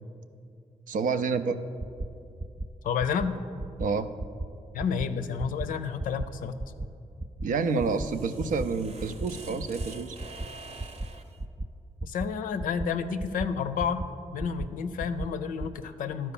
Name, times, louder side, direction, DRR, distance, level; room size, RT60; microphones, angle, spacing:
voice 1, 0.9-1.6 3.8-4.1 7.4-10.2, right 4 dB, 75° right, 10 dB, 0.5 m, -28 dB
sound 1, 1.8-2.1 2.4-2.7 3.0-3.3 3.6-3.9 4.2-4.5 4.8-5.1 5.4-5.7 6.0-6.3 6.6-6.9 7.2-7.5 7.8-8.1 8.4-8.7 9.0-9.3 9.6-9.9 10.2-10.5 10.8-11.1 11.4-11.7 12.0-12.3 12.6-12.9 13.2-13.5 13.8-14.1 14.4-14.7 15.0-15.3 15.6-15.7, right 2 dB, 20° right, 0.4 m, -34 dB
voice 2, 2.8-3.3 4.7-6.6 12.0-14.0 14.3-16.3, left 6 dB, 90° left, 10 dB, 0.5 m, -30 dB
sound 2, 7.5-11.4, right 2 dB, 55° right, 0.8 m, -46 dB
11.5 x 4.5 x 7.0 m, 2.5 s
supercardioid pair, 55°, 14 cm